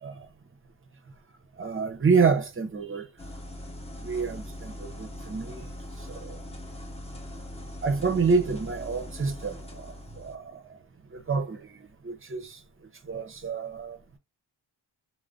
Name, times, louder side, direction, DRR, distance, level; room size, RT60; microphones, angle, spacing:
voice 1, 1.6-3.1 4.0-5.7 6.1-6.4 7.8-10.8 11.1-12.6 13.0-14.0, right 5 dB, 30° right, 0.6 m, -28 dB
sound 1, 3.2-10.4, left 1 dB, 15° left, 0.6 m, -41 dB
2.5 x 2.2 x 3.3 m
wide cardioid pair, 140°, 47 cm